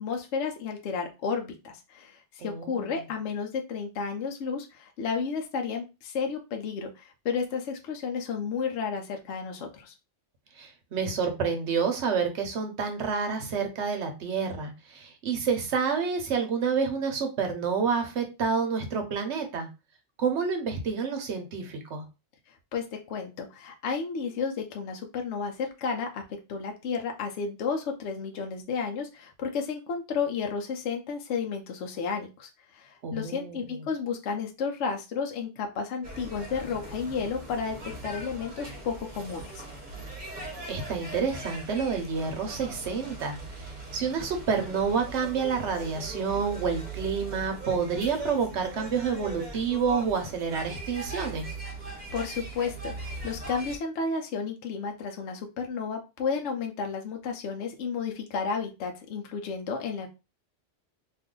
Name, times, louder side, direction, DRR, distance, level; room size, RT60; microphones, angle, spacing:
voice 1, 0.0-9.9 22.7-26.2 26.5-39.6 52.1-60.1, left 5 dB, 70° left, 2 dB, 0.9 m, -32 dB
voice 2, 2.4-2.9 10.6-19.7 20.2-22.0 33.0-33.8 40.7-43.4 43.9-51.5, right 5 dB, 70° right, 5 dB, 1.0 m, -29 dB
sound 1, 36.0-53.8, right 2 dB, 40° right, 1.0 m, -40 dB
2.6 x 2.5 x 3.7 m, 0.27 s
omnidirectional pair, 1.3 m